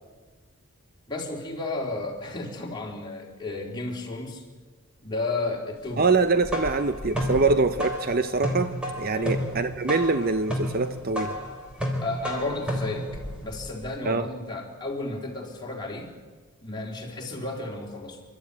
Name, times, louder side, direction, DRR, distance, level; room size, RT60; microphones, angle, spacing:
voice 1, 1.1-4.5 5.0-6.1 9.1-9.4 12.0-16.2 16.6-18.2, left 2 dB, 20° left, -1 dB, 4.0 m, -33 dB
voice 2, 6.0-8.7 9.0-11.4 14.0-14.2, right 3 dB, 40° right, 10 dB, 0.7 m, -24 dB
sound 1, 6.2-13.9, equal, 5° right, 3.9 m, -32 dB
28.0 x 13.0 x 9.9 m, 1.4 s
head